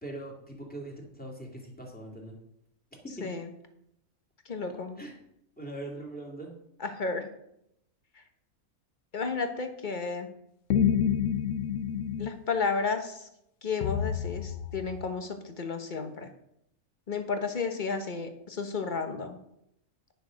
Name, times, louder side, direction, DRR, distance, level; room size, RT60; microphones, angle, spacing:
voice 1, 0.0-2.4 3.0-3.2 5.0-5.1 5.6-6.5, right 1 dB, 5° left, -1 dB, 2.4 m, -41 dB
voice 2, 4.4-5.0 6.8-7.3 9.1-10.3 12.2-13.3 13.6-16.3 17.1-19.4, left 4 dB, 35° left, 7 dB, 1.2 m, -32 dB
sound 1, 10.7-12.3 13.8-15.1, left 9 dB, 70° left, 1.0 m, -28 dB
10.5 x 6.9 x 6.3 m, 0.77 s
omnidirectional pair, 1.5 m